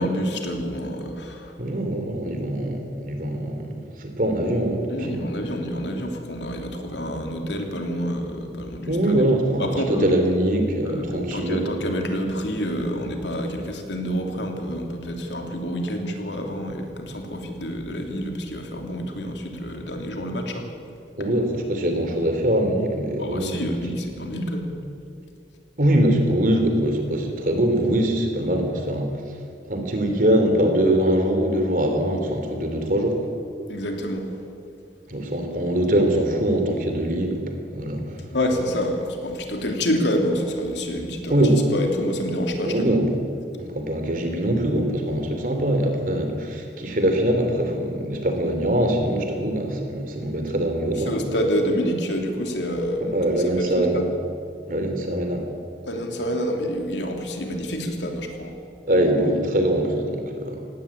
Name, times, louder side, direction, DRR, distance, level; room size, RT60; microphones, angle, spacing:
voice 1, 0.0-1.6 4.9-9.0 9.6-10.1 10.8-20.7 23.2-24.7 33.7-34.3 38.3-41.4 41.7-42.9 51.1-54.0 55.8-58.5, equal, 80° left, 3 dB, 3.1 m, -28 dB
voice 2, 1.6-5.2 8.9-11.7 21.2-23.6 25.8-29.2 29.7-33.3 35.1-37.4 37.7-38.0 41.3-41.6 42.7-43.1 43.6-51.3 53.0-54.0 54.7-55.4 58.9-60.6, right 1 dB, 45° right, 5 dB, 3.1 m, -23 dB
18.0 x 17.5 x 8.7 m, 2.5 s
head